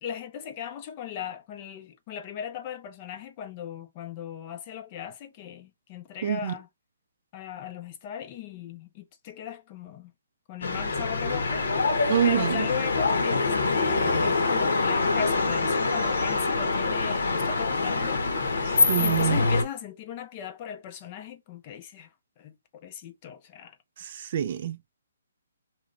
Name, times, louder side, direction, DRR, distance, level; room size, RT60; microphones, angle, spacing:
voice 1, 0.0-6.7 7.3-10.1 10.5-11.9 12.2-18.6 18.9-23.8 24.0-24.1, left 9 dB, 25° left, 0.4 m, -38 dB
voice 2, 6.2-6.5 12.1-12.7 18.9-19.4 24.0-24.8, right 10 dB, 40° right, 0.4 m, -26 dB
sound 1, 10.6-19.6, left 3 dB, 75° left, 1.0 m, -25 dB
3.0 x 2.8 x 2.5 m
hypercardioid pair, 170°, 0 cm